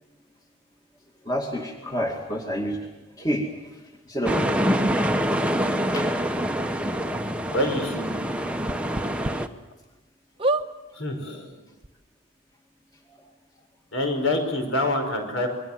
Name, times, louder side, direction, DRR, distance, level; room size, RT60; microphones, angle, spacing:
voice 1, 1.2-4.8 5.8-6.1 8.5-8.6 13.1-13.2, equal, 20° left, 2 dB, 2.2 m, -30 dB
sound 1, 4.2-9.5, equal, 5° right, 1.0 m, -25 dB
sound 2, 4.3-4.4 4.9-5.0 5.9-6.0 6.4-6.5 6.9-7.0 8.6-9.3 9.8-9.9 10.4-10.7 11.5-11.6 11.8-11.9, right 2 dB, 25° right, 1.0 m, -27 dB
voice 2, 7.5-8.1 11.0-11.5 13.9-15.5, left 1 dB, 70° left, 5 dB, 5.6 m, -26 dB
28.0 x 22.5 x 7.6 m, 1.0 s
head